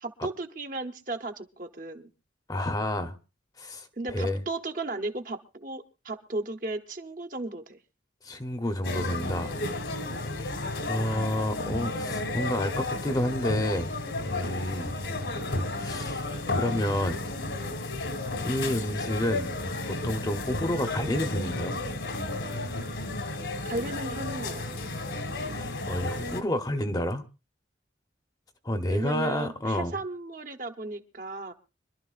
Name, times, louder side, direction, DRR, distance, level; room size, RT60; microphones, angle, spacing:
voice 1, 0.0-2.1 4.0-7.8 23.6-24.9 28.9-31.5, right 2 dB, 45° right, 1.0 m, -35 dB
voice 2, 2.5-3.2 3.6-4.4 8.2-9.5 10.9-13.9 14.3-14.9 15.8-16.3 16.5-17.2 18.4-19.5 19.8-21.8 25.6-27.2 28.6-30.0, left 1 dB, 20° left, 0.9 m, -29 dB
sound 1, 8.8-26.4, left 2 dB, 75° left, 1.9 m, -32 dB
25.5 x 12.0 x 2.5 m
head